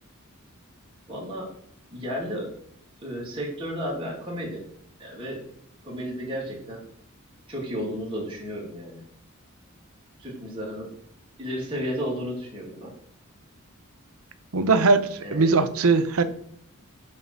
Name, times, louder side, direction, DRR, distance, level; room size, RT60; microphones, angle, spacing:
voice 1, 1.1-1.5 1.9-2.5 3.0-4.7 5.0-5.5 5.8-6.8 7.5-9.0 10.2-11.0 11.4-12.9 15.2-15.5, equal, 25° right, -4 dB, 2.2 m, -33 dB
voice 2, 14.5-16.2, right 4 dB, 85° right, 10 dB, 0.7 m, -20 dB
7.5 x 3.2 x 5.9 m, 0.68 s
head